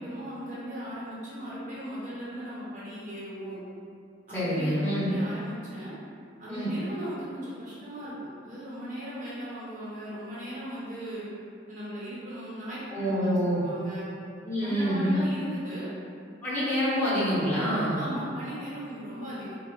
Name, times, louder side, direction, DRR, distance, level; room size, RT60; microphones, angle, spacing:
voice 1, 0.0-3.6 4.3-5.9 6.4-11.3 11.7-14.1 14.6-15.9 18.0-19.5, equal, 45° right, -9 dB, 0.9 m, -38 dB
voice 2, 4.3-5.1 6.5-6.7 12.9-13.6 14.4-15.2 16.4-18.0, equal, 10° left, -12 dB, 1.0 m, -26 dB
4.9 x 2.0 x 2.4 m, 2.3 s
head